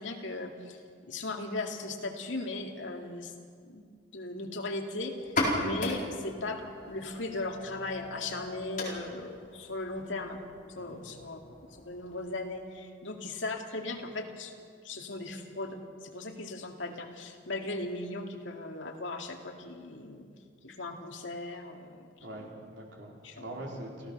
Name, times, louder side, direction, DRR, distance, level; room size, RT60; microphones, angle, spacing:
voice 1, 0.0-3.3 3.6-3.8 4.1-10.4 10.7-14.5 14.8-20.3 20.6-22.5 23.2-23.5 23.9-24.0, left 2 dB, 80° left, 3 dB, 2.1 m, -38 dB
sound 1, 5.2-12.6, left 1 dB, 45° left, 4.4 m, -37 dB
voice 2, 22.2-24.1, right 1 dB, 70° right, -1 dB, 4.1 m, -43 dB
29.0 x 14.5 x 6.6 m, 2.1 s
head